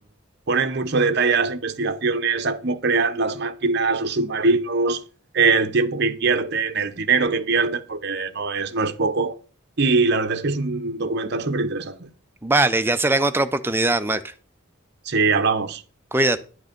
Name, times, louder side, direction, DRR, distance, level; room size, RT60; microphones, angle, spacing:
voice 1, 0.5-5.0 5.3-9.3 9.8-12.1 15.0-15.8, right 4 dB, 50° right, 0.8 m, -22 dB
voice 2, 12.4-14.2 16.1-16.4, right 2 dB, 10° right, 0.5 m, -20 dB
10.5 x 6.3 x 5.1 m
head